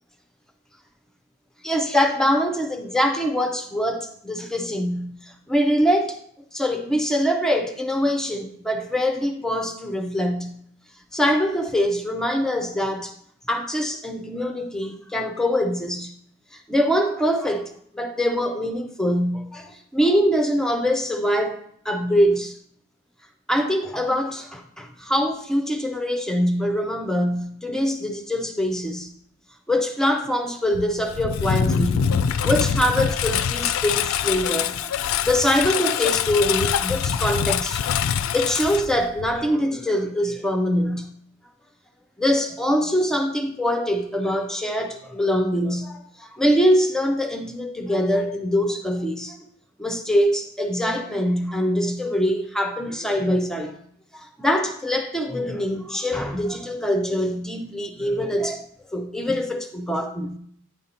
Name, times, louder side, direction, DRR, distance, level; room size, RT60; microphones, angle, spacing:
voice 1, 1.6-6.2 6.5-10.6 11.1-13.1 13.5-16.1 16.5-22.6 23.5-29.1 29.7-32.1 32.4-34.9 35.2-37.8 38.3-41.1 42.2-49.4 49.8-53.7 54.1-60.4, equal, 5° left, 0.4 m, -23 dB
Engine, 30.7-39.5, left 8 dB, 85° left, 0.3 m, -24 dB
9.3 x 5.1 x 2.8 m
head